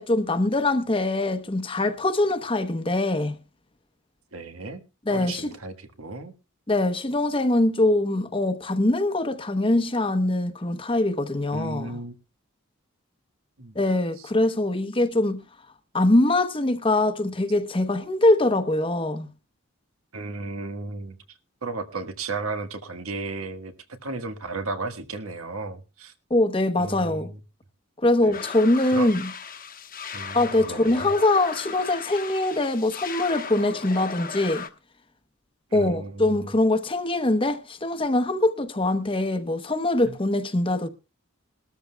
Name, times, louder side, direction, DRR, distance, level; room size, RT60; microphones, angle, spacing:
voice 1, 0.0-3.4 5.1-5.5 6.7-12.0 13.7-15.4 15.9-19.3 26.3-27.3 28.0-29.3 30.3-34.7 35.7-40.9, left 2 dB, 25° left, 0.9 m, -23 dB
voice 2, 4.3-4.8 5.1-6.3 11.5-12.1 13.6-13.7 14.2-14.3 20.1-21.2 21.6-23.7 24.0-26.1 26.8-27.4 28.2-28.5 28.9-29.1 30.1-31.1 35.7-36.5 40.0-40.1, right 3 dB, 85° right, 1.6 m, -34 dB
sound 1, 28.3-34.7, left 5 dB, 40° left, 1.1 m, -37 dB
21.5 x 13.0 x 2.3 m
head